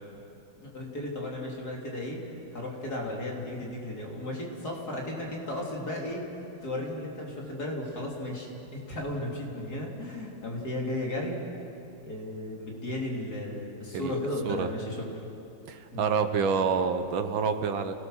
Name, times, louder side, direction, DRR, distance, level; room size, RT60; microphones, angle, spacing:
voice 1, 0.6-2.2 2.5-6.2 6.6-11.4 12.0-15.1 15.9-16.1, left 1 dB, 50° left, -2 dB, 3.7 m, -35 dB
voice 2, 15.7-18.0, right 6 dB, 75° right, 8 dB, 1.8 m, -27 dB
28.5 x 18.0 x 6.5 m, 2.7 s
omnidirectional pair, 2.2 m